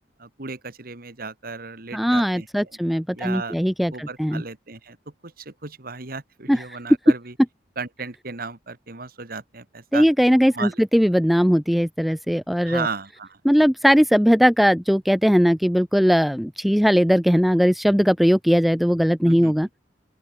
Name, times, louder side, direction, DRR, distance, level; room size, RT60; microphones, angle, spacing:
voice 1, 0.2-2.8 3.1-3.5 3.9-5.0 5.2-7.3 7.8-10.1 10.5-10.8 12.6-13.4 19.3-19.5, right 4 dB, 50° right, 1.9 m, -35 dB
voice 2, 1.9-4.4 6.5-6.6 9.9-12.9 13.5-19.7, equal, ahead, 0.4 m, -19 dB
open air
head